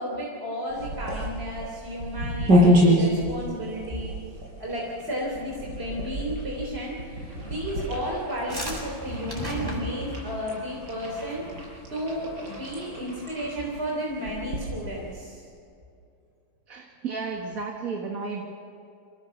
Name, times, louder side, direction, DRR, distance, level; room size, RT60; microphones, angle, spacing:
voice 1, 0.0-4.1 4.6-11.5 11.9-15.5, equal, 35° right, -3 dB, 3.9 m, -33 dB
sound 1, 0.7-15.2, equal, 75° right, 7.1 m, -28 dB
sound 2, 8.5-10.3 11.3-11.6 11.8-11.9 12.1-12.5, right 1 dB, 10° right, 6.4 m, -34 dB
voice 2, 16.7-18.4, right 4 dB, 50° right, 1 dB, 2.2 m, -33 dB
27.5 x 17.0 x 7.2 m, 2.6 s
omnidirectional pair, 1.9 m